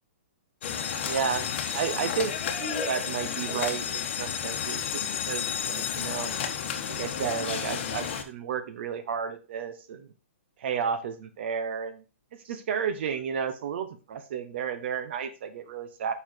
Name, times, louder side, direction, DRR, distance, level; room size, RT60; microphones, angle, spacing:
sound 1, 0.6-8.2, left 8 dB, 50° left, 1.1 m, -31 dB
Laughter, 0.6-4.3, left 1 dB, ahead, 2.6 m, -41 dB
voice 1, 1.0-1.4 1.7-2.3 2.9-6.3 7.0-10.1 10.6-12.0 12.4-16.1, right 7 dB, 55° right, 9 dB, 0.9 m, -32 dB
5.5 x 4.7 x 4.6 m, 0.34 s
hypercardioid pair, 155°, 7 cm